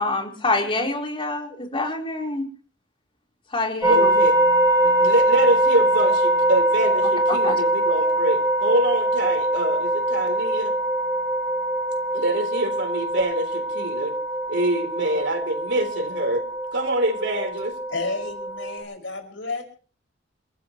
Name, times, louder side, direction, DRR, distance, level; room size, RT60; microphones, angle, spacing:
voice 1, 0.0-2.4 3.5-4.1 7.4-7.6, left 2 dB, 30° left, 1 dB, 4.0 m, -26 dB
sound 1, 3.8-18.8, right 1 dB, 15° right, 5.9 m, -23 dB
voice 2, 3.9-4.3 4.8-10.8 12.1-14.1 14.5-16.4 16.7-17.7, right 1 dB, 70° right, 6 dB, 3.9 m, -25 dB
voice 3, 17.9-19.6, left 3 dB, 80° left, 4 dB, 5.7 m, -31 dB
29.0 x 14.5 x 3.1 m, 0.40 s
head